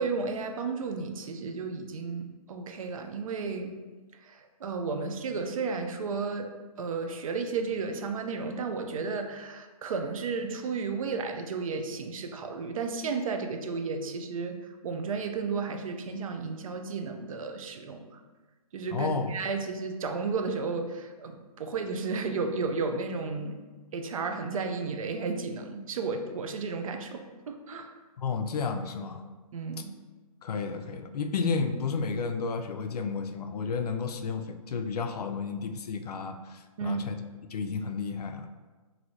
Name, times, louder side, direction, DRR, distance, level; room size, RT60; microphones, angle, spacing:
voice 1, 0.0-3.8 4.1-6.5 6.8-18.2 18.7-23.6 23.9-27.9 29.5-29.9 36.8-37.0, right 4 dB, 65° right, 5 dB, 0.4 m, -33 dB
voice 2, 18.9-19.3 28.2-29.2 30.4-37.2 37.5-38.5, left 5 dB, 85° left, 7 dB, 0.4 m, -32 dB
3.0 x 2.6 x 2.7 m, 1.3 s
hypercardioid pair, 160°, 19 cm